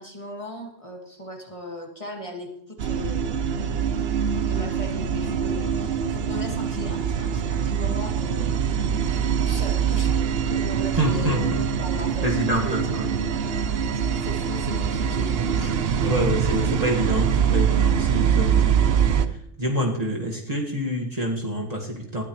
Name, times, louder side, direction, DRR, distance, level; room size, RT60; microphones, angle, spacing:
voice 1, 0.0-4.1 4.5-8.7 9.5-13.0 13.9-15.8, equal, 25° left, 1 dB, 1.9 m, -38 dB
sound 1, 2.8-19.3, right 7 dB, 60° right, 0.9 m, -24 dB
voice 2, 11.0-11.8 12.2-13.1 13.3-13.7 16.0-19.0 19.6-22.2, equal, 30° right, -1 dB, 1.8 m, -27 dB
20.0 x 13.0 x 3.1 m, 0.76 s
omnidirectional pair, 1.3 m